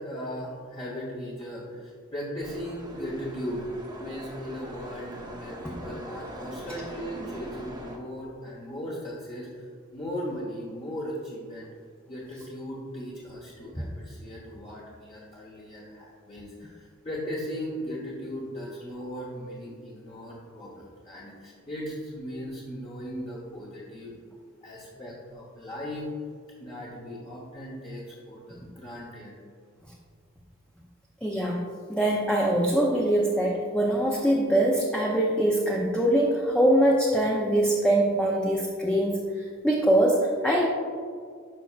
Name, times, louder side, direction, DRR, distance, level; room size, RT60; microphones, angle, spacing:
voice 1, 0.0-3.7 4.0-9.6 9.9-11.7 12.1-24.2 24.6-26.1 26.6-29.3, equal, 25° left, -5 dB, 1.0 m, -37 dB
sound 1, 2.4-8.0, equal, 20° right, 1.0 m, -42 dB
voice 2, 31.2-31.6 31.9-40.7, right 1 dB, 5° left, -3 dB, 0.6 m, -23 dB
10.5 x 5.8 x 2.4 m, 2.1 s
head